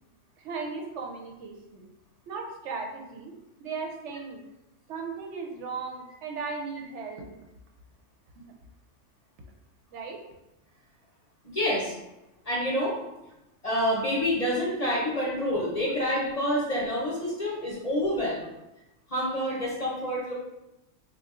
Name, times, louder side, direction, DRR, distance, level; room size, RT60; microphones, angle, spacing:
voice 1, 0.4-1.9 2.3-3.3 3.6-4.4 4.9-7.3 8.4-8.5 9.9-10.2 14.2-14.3, right 4 dB, 70° right, 1 dB, 0.9 m, -37 dB
voice 2, 11.4-11.9 12.4-13.0 13.6-18.5 19.1-20.3, equal, 35° left, -5 dB, 0.7 m, -27 dB
3.6 x 2.2 x 3.6 m, 0.94 s
omnidirectional pair, 1.3 m